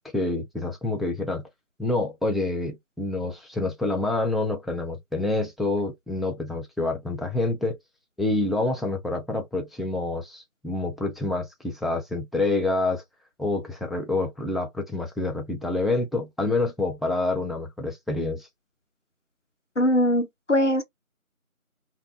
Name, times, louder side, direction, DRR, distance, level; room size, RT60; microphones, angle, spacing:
voice 1, 0.1-1.4 1.8-7.8 8.2-13.0 13.4-18.5, left 2 dB, ahead, 0.5 m, -27 dB
voice 2, 19.8-20.8, equal, 60° left, 0.5 m, -21 dB
2.9 x 2.1 x 2.4 m
figure-of-eight pair, 175°, 43 cm